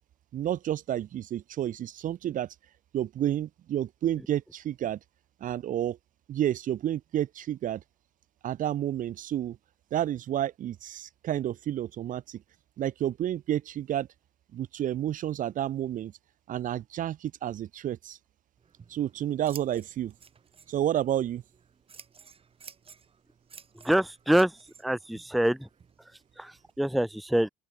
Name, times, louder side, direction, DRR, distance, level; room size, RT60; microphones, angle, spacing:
voice 1, 0.3-2.5 2.9-5.0 5.4-6.0 6.3-7.8 8.4-9.6 9.9-12.4 12.8-14.1 14.5-16.1 16.5-18.2 18.9-20.1 20.7-21.4, right 11 dB, 50° right, 0.6 m, -30 dB
Scissors, 18.6-26.7, right 6 dB, 35° right, 7.0 m, -53 dB
voice 2, 23.9-24.5 24.8-25.6 26.8-27.5, right 1 dB, ahead, 0.5 m, -24 dB
open air
cardioid pair, 110°, 17 cm